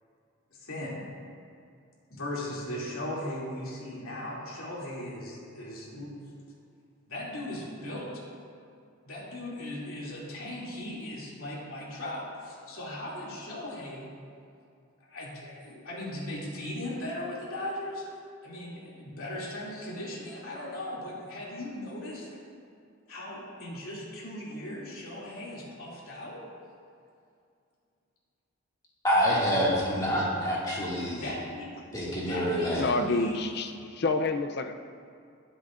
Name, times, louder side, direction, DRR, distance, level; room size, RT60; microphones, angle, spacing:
voice 1, 0.5-1.0 2.1-6.1 7.1-8.2 9.0-14.1 15.1-18.0 18.4-22.3 23.1-26.4 31.1-33.4, left 1 dB, 85° left, -6 dB, 2.8 m, -38 dB
voice 2, 29.0-31.2 31.9-32.9, equal, 15° left, -7 dB, 2.3 m, -26 dB
voice 3, 32.8-34.7, left 3 dB, 50° left, 7 dB, 0.6 m, -28 dB
20.5 x 7.9 x 2.6 m, 2.4 s
head